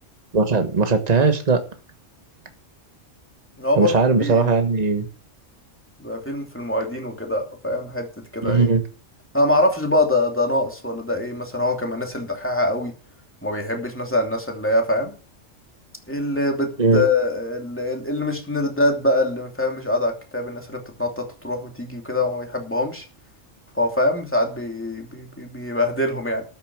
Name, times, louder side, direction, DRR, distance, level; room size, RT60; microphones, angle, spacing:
voice 1, 0.3-1.6 3.8-5.0 8.4-8.8 16.8-17.0, right 4 dB, 35° right, 7 dB, 1.5 m, -18 dB
voice 2, 3.6-4.5 6.0-8.1 8.3-8.7 9.3-12.9 13.4-15.1 16.1-23.0 23.7-26.4, left 2 dB, 10° left, 2 dB, 2.8 m, -24 dB
13.5 x 7.0 x 6.2 m, 0.37 s
omnidirectional pair, 1.3 m